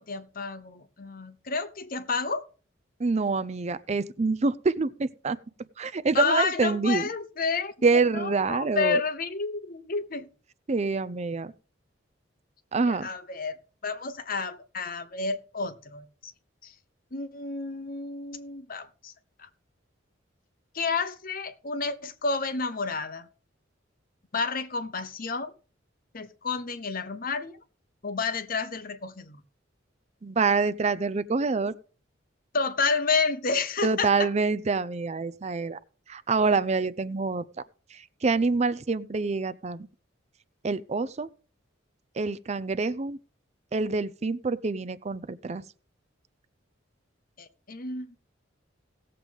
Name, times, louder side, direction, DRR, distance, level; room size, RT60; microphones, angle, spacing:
voice 1, 0.0-2.4 6.1-10.3 12.9-13.5 13.8-16.3 16.6-16.7 17.1-19.1 19.4-19.5 20.7-23.3 24.3-25.5 26.1-27.6 28.0-29.4 32.5-34.3 47.4-48.2, left 4 dB, 45° left, 0.9 m, -30 dB
voice 2, 3.0-5.4 5.8-7.1 7.8-9.0 10.7-11.5 12.7-13.1 30.2-31.7 33.8-35.8 36.1-37.4 37.9-39.9 40.6-41.3 42.2-43.2 43.7-45.6, right 4 dB, 35° right, 0.5 m, -26 dB
17.0 x 7.6 x 3.5 m
head